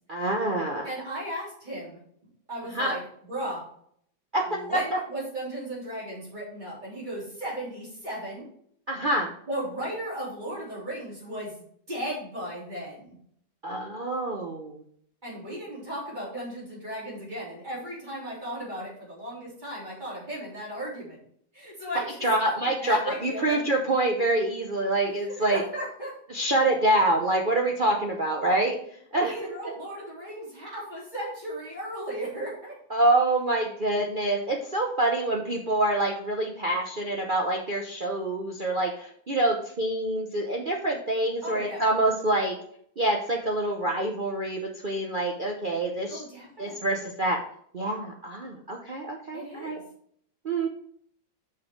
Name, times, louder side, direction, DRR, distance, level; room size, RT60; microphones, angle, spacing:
voice 1, 0.1-0.9 2.7-2.9 4.3-4.4 4.7-5.0 8.9-9.3 13.6-14.8 22.2-25.6 26.3-28.8 29.1-29.5 32.9-42.5 43.0-46.2 46.6-47.4 47.7-49.8 50.4-50.7, right 2 dB, 50° right, 0 dB, 0.6 m, -26 dB
voice 2, 0.8-2.0 2.5-3.6 4.5-8.5 9.5-11.5 11.9-13.2 15.2-21.2 21.5-22.5 22.8-23.7 25.1-26.1 29.2-32.7 41.4-41.8 46.1-47.0 49.3-49.8, right 1 dB, 25° right, -6 dB, 3.6 m, -36 dB
6.2 x 5.9 x 4.6 m, 0.65 s
omnidirectional pair, 2.0 m